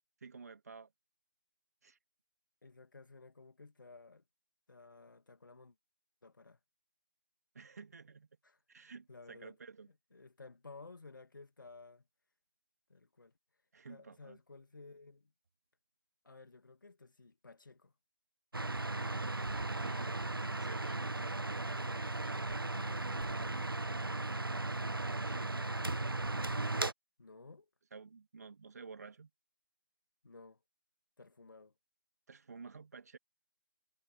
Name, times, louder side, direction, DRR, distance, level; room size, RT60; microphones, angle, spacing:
voice 1, 0.2-0.9 1.8-2.0 7.5-8.3 8.7-9.9 13.7-14.4 19.2-20.2 20.5-21.8 22.2-22.6 25.1-25.7 27.9-29.3 32.3-33.2, right 5 dB, 45° right, 1.9 m, -52 dB
voice 2, 2.6-4.2 4.7-5.8 6.2-6.6 8.4-8.6 9.1-9.6 10.1-12.0 12.9-13.3 13.9-15.3 16.2-17.9 21.6-22.1 22.7-23.5 27.2-27.7 30.2-30.6 31.2-31.7, left 3 dB, 65° left, 2.4 m, -55 dB
sound 1, 18.5-26.9, right 2 dB, 80° right, 1.1 m, -36 dB
figure-of-eight pair, 155°, 12 cm